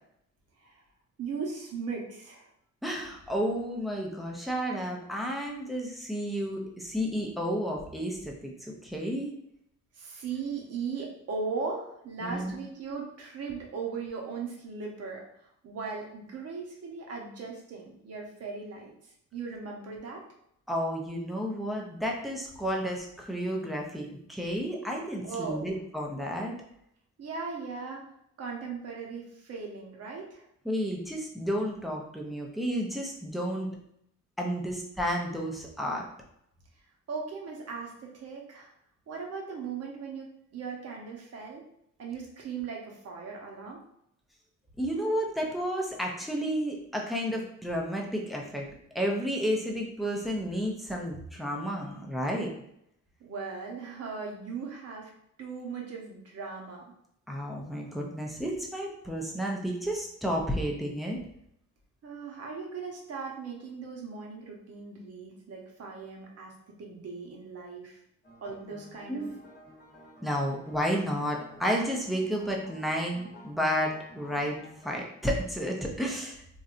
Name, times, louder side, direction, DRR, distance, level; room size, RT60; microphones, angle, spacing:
voice 1, 1.2-2.5 9.9-20.2 25.2-25.7 27.2-28.1 28.4-30.5 37.1-38.7 39.1-41.7 42.0-43.8 53.2-55.1 55.4-56.9 62.0-68.0 68.4-69.2, right 5 dB, 55° right, 0 dB, 0.9 m, -38 dB
voice 2, 2.8-9.3 12.2-12.5 20.7-26.6 30.6-33.7 34.4-36.1 44.8-48.7 48.9-52.5 57.3-61.2 69.1-69.3 70.2-74.6 74.8-76.4, equal, ahead, -1 dB, 0.6 m, -31 dB
sound 1, 68.2-75.0, equal, 30° left, 1.0 m, -52 dB
3.1 x 2.6 x 2.5 m, 0.73 s
cardioid pair, 90°, 30 cm